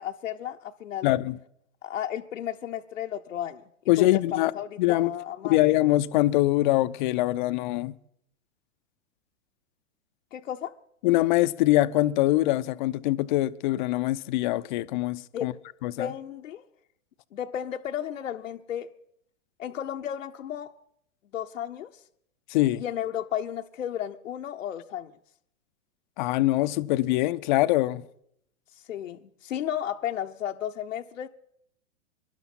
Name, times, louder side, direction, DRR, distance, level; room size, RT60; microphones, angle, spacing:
voice 1, 0.0-1.1 1.8-3.6 4.0-5.6 10.3-10.7 15.3-15.5 16.0-16.7 17.3-18.9 19.6-20.7 21.3-21.9 22.8-25.1 28.9-31.3, left 10 dB, 70° left, 0.8 m, -33 dB
voice 2, 1.0-1.4 3.9-4.5 4.8-5.1 5.4-7.9 11.0-15.5 15.8-16.1 22.5-22.8 26.2-28.1, left 17 dB, 35° left, 0.6 m, -23 dB
25.0 x 12.0 x 4.2 m
hypercardioid pair, 115°, 40 cm